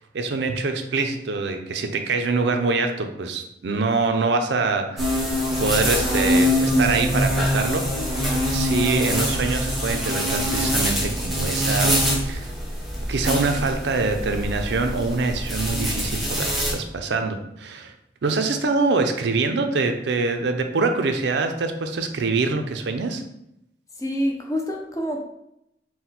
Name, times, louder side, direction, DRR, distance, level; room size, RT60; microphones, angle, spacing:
voice 1, 0.1-5.2 5.6-7.9 8.5-12.5 13.1-17.9 18.2-23.2, right 3 dB, 70° right, 6 dB, 0.5 m, -24 dB
sound 1, 5.0-16.7, equal, ahead, 0.9 m, -24 dB
voice 2, 24.0-25.2, equal, 20° left, 2 dB, 0.5 m, -26 dB
4.2 x 2.2 x 4.0 m, 0.80 s
head